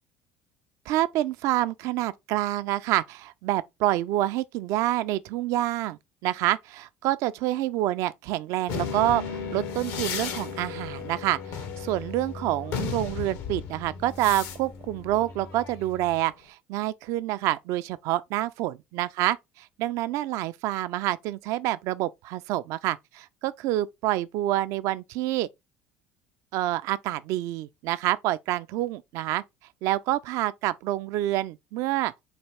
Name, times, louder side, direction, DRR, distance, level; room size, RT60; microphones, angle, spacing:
voice 1, 0.9-25.5 26.5-29.4 29.8-32.1, right 15 dB, 70° right, 0.3 m, -27 dB
sound 1, 8.7-16.2, left 6 dB, 70° left, 0.8 m, -35 dB
4.2 x 2.3 x 3.3 m
supercardioid pair, 80°, 6 cm